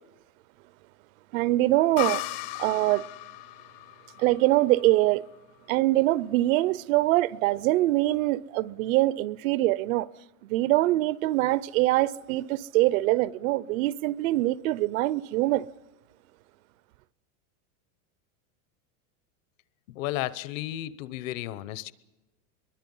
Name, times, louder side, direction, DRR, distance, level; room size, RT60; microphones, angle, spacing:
voice 1, 1.3-2.2 2.6-3.0 4.2-5.2 5.7-10.1 10.4-15.7, right 17 dB, 65° right, 0.7 m, -24 dB
sound 1, 2.0-5.5, left 18 dB, 40° left, 0.7 m, -36 dB
voice 2, 19.9-21.9, left 15 dB, 65° left, 1.0 m, -33 dB
24.5 x 22.5 x 5.5 m
supercardioid pair, 155°, 43 cm